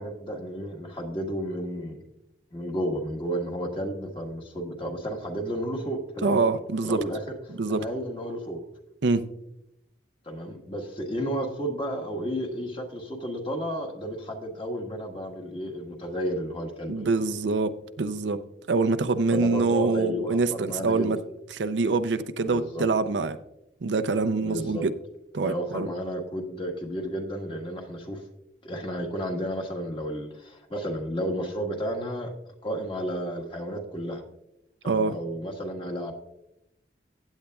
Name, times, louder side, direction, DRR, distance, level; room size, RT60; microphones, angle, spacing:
voice 1, 0.0-2.0 2.5-6.4 6.8-7.2 7.5-8.6 10.2-17.1 19.3-21.1 22.4-22.9 24.4-24.8 25.4-28.2 28.6-32.3 32.6-34.2 34.8-36.1, equal, 30° left, 1.5 m, -32 dB
voice 2, 6.2-7.0 7.6-7.8 9.0-9.3 16.9-18.4 18.7-21.2 21.5-23.4 23.8-24.9 25.3-25.9 34.8-35.2, right 3 dB, 75° right, 0.5 m, -25 dB
15.5 x 8.9 x 2.3 m
head